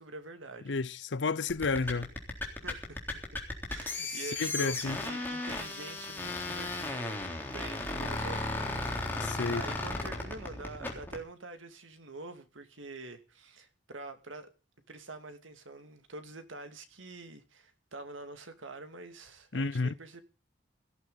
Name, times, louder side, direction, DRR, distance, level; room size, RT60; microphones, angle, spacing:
voice 1, 0.0-0.8 1.6-1.7 2.6-3.2 3.7-14.5 14.9-20.2, right 3 dB, 90° right, 2.4 m, -46 dB
voice 2, 0.7-2.1 4.4-5.0 9.2-9.6 19.5-19.9, left 4 dB, 70° left, 0.7 m, -31 dB
sound 1, 1.5-11.2, left 2 dB, 10° left, 3.7 m, -35 dB
17.0 x 13.5 x 4.0 m
head